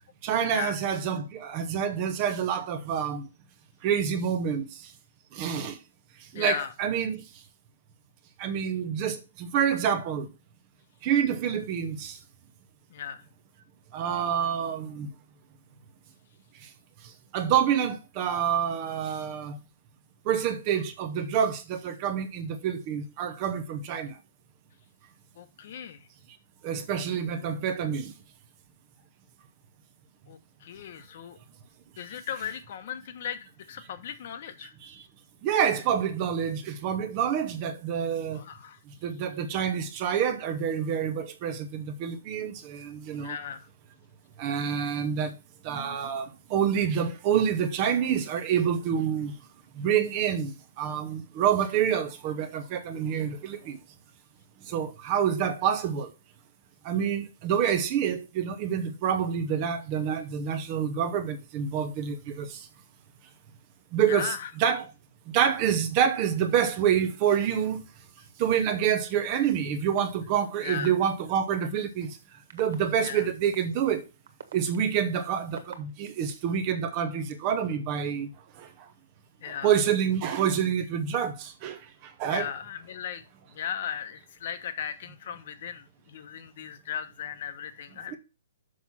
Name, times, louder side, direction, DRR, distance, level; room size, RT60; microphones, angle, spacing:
voice 1, 0.2-3.3 3.8-4.9 5.3-5.8 6.3-7.3 8.4-10.3 11.0-12.2 13.9-15.1 16.6-16.7 17.0-19.6 20.2-24.2 26.6-28.1 34.8-35.0 35.4-38.4 39.0-43.4 44.4-45.4 45.6-49.3 49.7-53.8 54.6-56.1 56.8-62.7 63.9-64.9 65.3-67.8 68.4-72.2 72.5-74.0 74.5-78.3 78.6-78.9 79.4-82.5 88.1-88.2, right 8 dB, 25° right, 0.7 m, -27 dB
voice 2, 6.3-6.7 12.9-13.2 25.4-26.1 30.3-31.4 32.0-34.7 38.3-38.8 43.1-43.7 64.1-64.5 70.6-70.9 73.0-73.3 79.4-79.7 82.3-83.2 83.5-88.2, left 8 dB, 40° left, 1.1 m, -37 dB
sound 1, 70.0-70.1 70.8-70.9 71.5-71.8 72.5-72.8 73.5-73.6 74.2-76.3 77.0-77.7, right 7 dB, 60° right, 1.6 m, -43 dB
6.3 x 6.0 x 5.6 m
hypercardioid pair, 170°, 0 cm